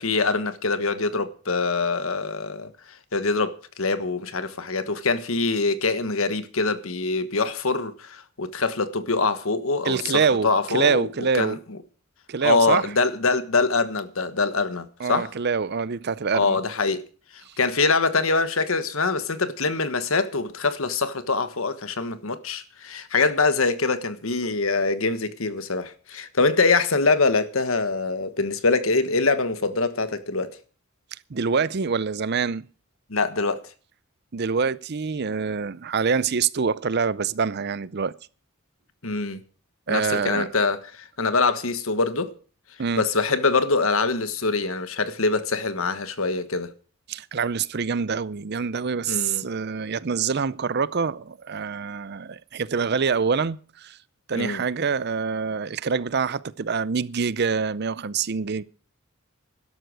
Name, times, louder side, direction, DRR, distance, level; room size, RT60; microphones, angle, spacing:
voice 1, 0.0-11.1 11.3-11.6 12.4-15.3 16.3-17.0 17.6-30.5 33.1-33.6 39.0-39.4 39.9-42.3 43.0-46.7 49.1-49.4 54.3-54.6, left 3 dB, 70° left, 1.4 m, -24 dB
voice 2, 9.8-11.6 12.3-12.8 15.0-16.6 31.3-32.7 34.3-38.1 39.9-40.5 42.8-43.0 47.1-54.0 54.3-58.6, right 5 dB, 50° right, 0.6 m, -25 dB
12.5 x 11.5 x 6.3 m
head